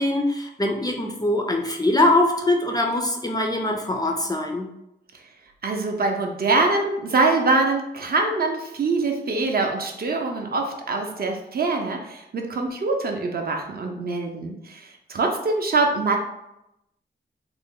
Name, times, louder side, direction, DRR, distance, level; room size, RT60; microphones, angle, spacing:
voice 1, 0.0-4.7, left 1 dB, 20° left, 1 dB, 0.3 m, -22 dB
voice 2, 5.6-16.2, right 3 dB, 50° right, 2 dB, 0.5 m, -24 dB
3.2 x 2.0 x 3.6 m, 0.86 s
wide cardioid pair, 130°, 20 cm